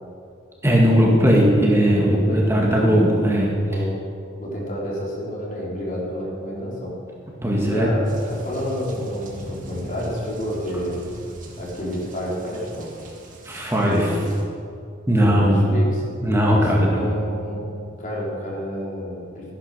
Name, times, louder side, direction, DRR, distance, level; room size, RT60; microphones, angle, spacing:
voice 1, 0.6-3.5 7.4-7.9 13.5-14.1 15.1-15.6 16.2-17.1, equal, 15° right, -3 dB, 1.8 m, -18 dB
voice 2, 2.0-3.0 3.7-4.0 4.4-6.9 7.6-11.0 11.6-12.9 13.8-14.2 15.1-16.0 16.5-17.7 18.0-19.5, equal, 45° left, -4 dB, 3.9 m, -29 dB
sound 1, 8.0-14.4, equal, 45° right, 2.3 m, -39 dB
14.0 x 10.5 x 6.7 m, 2.4 s
head